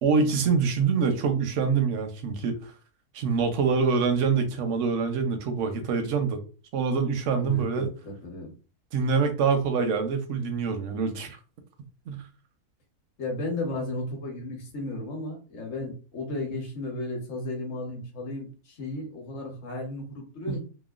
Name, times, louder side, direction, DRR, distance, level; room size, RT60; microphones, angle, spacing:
voice 1, 0.0-2.7 3.1-6.4 6.7-7.9 8.9-11.4 12.1-12.2 20.5-20.6, right 5 dB, 65° right, 0.7 m, -25 dB
voice 2, 7.4-8.5 13.2-20.6, left 2 dB, 50° left, 1.1 m, -34 dB
2.9 x 2.1 x 2.3 m
omnidirectional pair, 1.6 m